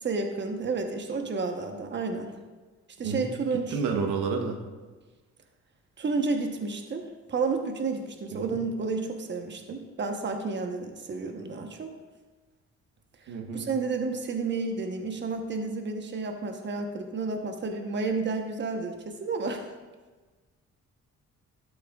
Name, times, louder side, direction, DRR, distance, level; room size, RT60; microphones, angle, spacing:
voice 1, 0.0-2.3 3.0-3.8 6.0-11.9 13.5-19.6, right 4 dB, 35° right, 4 dB, 1.1 m, -31 dB
voice 2, 3.7-4.6 8.3-8.6 13.3-13.7, right 5 dB, 85° right, 3 dB, 1.1 m, -30 dB
12.0 x 8.3 x 2.4 m, 1.3 s
cardioid pair, 90°, 30 cm